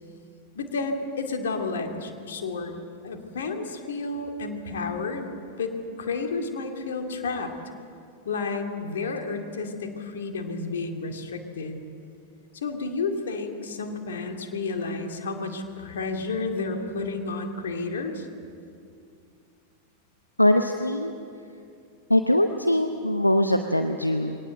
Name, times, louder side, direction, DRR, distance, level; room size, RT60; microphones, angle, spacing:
voice 1, 0.5-2.8 3.0-5.3 5.6-7.5 8.2-11.8 12.5-18.3, left 3 dB, 65° left, 4 dB, 2.5 m, -31 dB
voice 2, 20.4-21.1 22.1-24.4, left 1 dB, 85° left, 6 dB, 0.8 m, -22 dB
22.5 x 18.5 x 7.9 m, 2.4 s
figure-of-eight pair, 90°, 0 cm